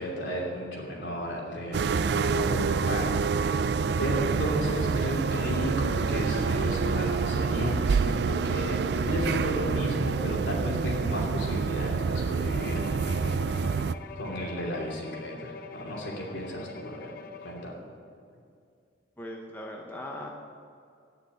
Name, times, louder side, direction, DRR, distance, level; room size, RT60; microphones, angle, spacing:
voice 1, 0.0-3.2 3.5-3.7 4.0-13.4 14.1-17.2 17.4-17.7, equal, 65° left, -2 dB, 2.8 m, -34 dB
sound 1, 1.7-13.9, right 5 dB, 55° right, 0.3 m, -27 dB
Bowed string instrument, 12.5-17.8, left 5 dB, 50° left, 0.6 m, -44 dB
voice 2, 19.2-20.3, left 1 dB, 10° left, 0 dB, 0.8 m, -39 dB
9.9 x 7.0 x 9.1 m, 2.4 s
head